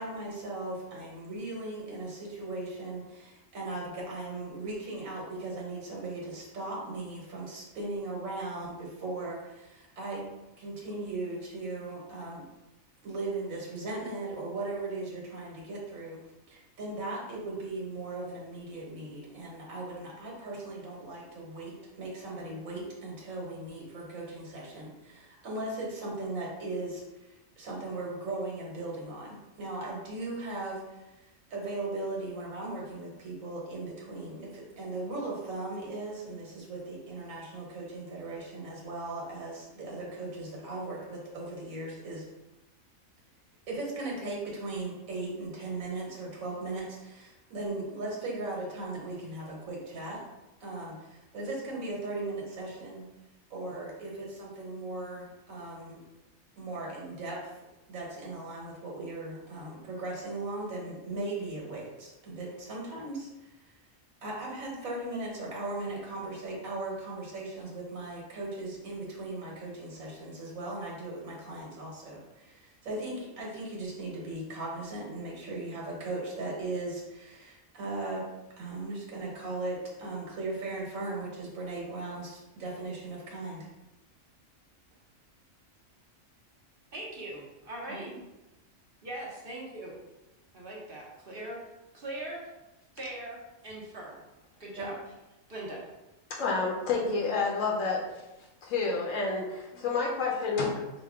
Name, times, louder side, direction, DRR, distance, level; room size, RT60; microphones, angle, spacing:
voice 1, 0.0-10.3 10.6-12.4 13.0-16.2 16.5-42.3 43.7-50.2 50.6-53.1 53.5-56.0 56.6-57.6 57.9-63.7 64.2-78.2 78.6-83.7 87.9-88.1 94.8-94.9, right 2 dB, 80° right, -3 dB, 1.4 m, -38 dB
voice 2, 86.9-88.1 89.0-89.9 90.5-91.6 91.9-92.5 92.9-93.4 93.6-94.2 94.6-94.9 95.5-95.8, right 1 dB, 50° right, -4 dB, 0.9 m, -40 dB
voice 3, 96.3-98.1 98.6-100.9, left 4 dB, 75° left, -1 dB, 1.0 m, -29 dB
5.0 x 2.1 x 3.5 m, 1.0 s
omnidirectional pair, 1.4 m